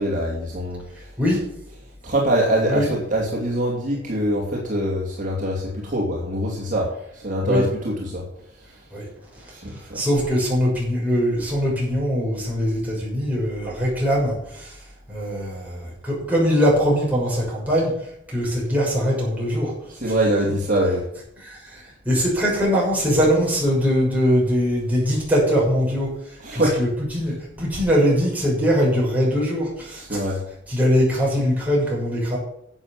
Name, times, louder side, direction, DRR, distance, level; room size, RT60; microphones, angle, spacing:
voice 1, 0.0-0.8 2.0-8.3 9.5-10.0 20.0-21.0 26.4-26.8 30.1-30.4, right 1 dB, 45° right, -3 dB, 2.9 m, -23 dB
voice 2, 0.9-1.4 2.7-2.9 7.4-7.7 8.9-14.8 15.1-17.9 18.3-19.7 20.1-20.5 21.5-30.4 30.7-32.4, equal, 10° right, -5 dB, 6.6 m, -22 dB
11.5 x 8.0 x 7.5 m, 0.77 s
head